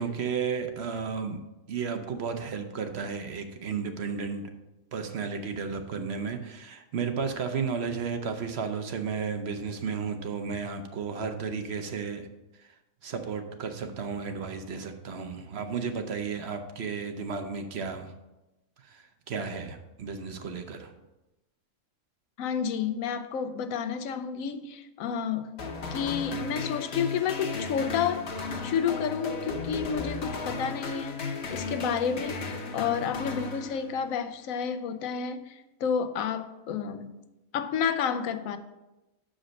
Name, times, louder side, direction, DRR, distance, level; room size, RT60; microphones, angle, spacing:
voice 1, 0.0-1.4 1.7-4.5 4.9-12.3 12.6-12.7 13.0-18.1 18.8-21.0, right 5 dB, 60° right, 6 dB, 0.9 m, -33 dB
voice 2, 22.4-25.6 25.9-28.3 28.6-31.2 31.5-32.4 32.7-37.1 37.5-38.6, left 7 dB, 90° left, 9 dB, 1.0 m, -30 dB
sound 1, 25.6-34.2, left 4 dB, 55° left, 1.1 m, -35 dB
6.4 x 5.0 x 6.2 m, 1.0 s
omnidirectional pair, 1.4 m